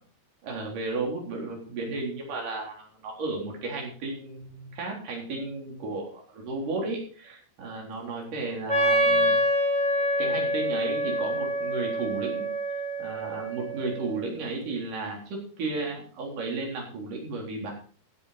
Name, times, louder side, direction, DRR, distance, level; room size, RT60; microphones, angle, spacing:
voice 1, 0.4-9.4 10.2-17.7, right 3 dB, 60° right, -1 dB, 5.4 m, -34 dB
Wind instrument woodwind instrument, 8.7-14.3, equal, 20° right, 2.8 m, -26 dB
16.0 x 8.8 x 4.3 m, 0.42 s
omnidirectional pair, 4.4 m